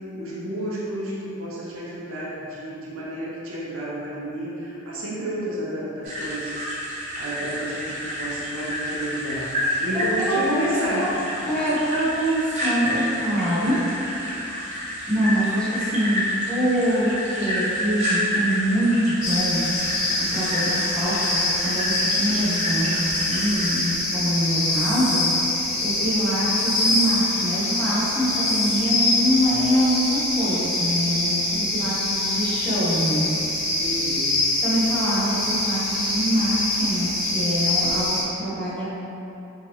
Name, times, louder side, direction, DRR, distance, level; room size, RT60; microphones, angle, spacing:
voice 1, 0.1-6.5 6.8-6.9 7.2-11.1 33.6-34.3, right 1 dB, 85° right, -6 dB, 0.8 m, -30 dB
sound 1, 6.0-23.9, equal, 35° right, 0.8 m, -29 dB
voice 2, 9.9-10.6 11.0-11.2 11.4-13.8 15.1-19.6 19.9-25.3 25.8-33.2 34.6-38.1 38.4-38.9, equal, 5° left, -11 dB, 0.9 m, -24 dB
sound 2, 19.2-38.2, left 2 dB, 90° left, 0.9 m, -24 dB
3.6 x 2.9 x 3.0 m, 3.0 s
head